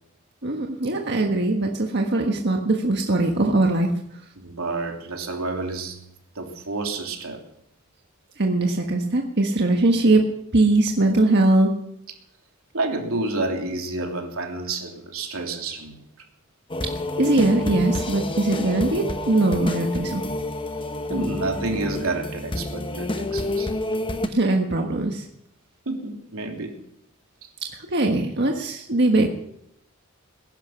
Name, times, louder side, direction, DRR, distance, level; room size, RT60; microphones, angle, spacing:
voice 1, 0.4-3.9 8.4-10.2 10.5-11.7 17.2-20.3 24.2-25.2 27.7-29.3, right 2 dB, 55° right, 1 dB, 1.5 m, -21 dB
voice 2, 4.4-6.0 6.3-7.4 12.7-15.9 21.1-23.7 25.9-26.8, right 2 dB, 85° right, 2 dB, 3.0 m, -29 dB
sound 1, 16.7-24.3, left 2 dB, 25° left, 0.9 m, -29 dB
20.5 x 11.0 x 5.9 m, 0.75 s
head